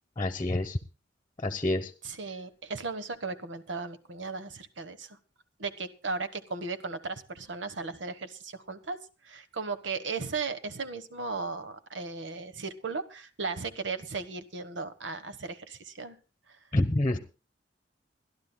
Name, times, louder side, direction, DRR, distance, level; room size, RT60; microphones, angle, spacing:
voice 1, 0.2-0.8 1.4-1.9 16.7-17.2, left 1 dB, 25° left, 10 dB, 1.0 m, -27 dB
voice 2, 2.0-5.2 5.6-9.0 9.2-16.2, right 4 dB, 85° right, 11 dB, 1.3 m, -36 dB
29.5 x 12.0 x 2.2 m, 0.33 s
head